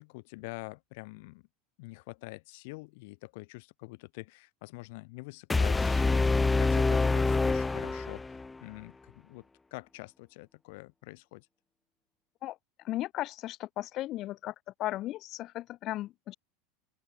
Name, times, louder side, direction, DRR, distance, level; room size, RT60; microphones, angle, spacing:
voice 1, 0.0-1.4 1.8-11.5, left 25 dB, 65° left, 6.6 m, -46 dB
sound 1, 5.5-8.6, left 3 dB, 10° left, 0.6 m, -26 dB
voice 2, 12.8-14.5 14.8-16.3, left 15 dB, 40° left, 1.7 m, -35 dB
open air
supercardioid pair, 140°, 0 cm